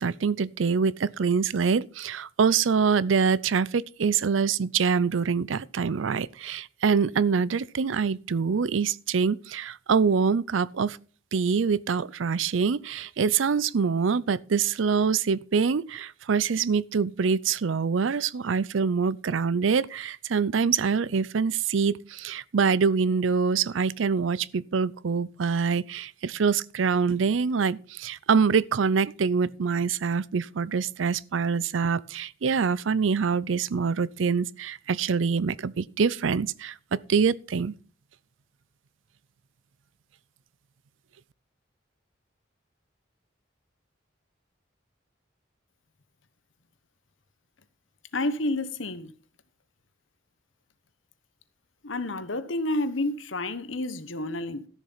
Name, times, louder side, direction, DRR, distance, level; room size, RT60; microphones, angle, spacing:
voice 1, 0.0-11.0 11.3-37.8, right 5 dB, 85° right, 0.5 m, -25 dB
voice 2, 48.1-49.1 51.8-54.7, left 2 dB, 85° left, 1.2 m, -30 dB
13.0 x 7.2 x 5.6 m
head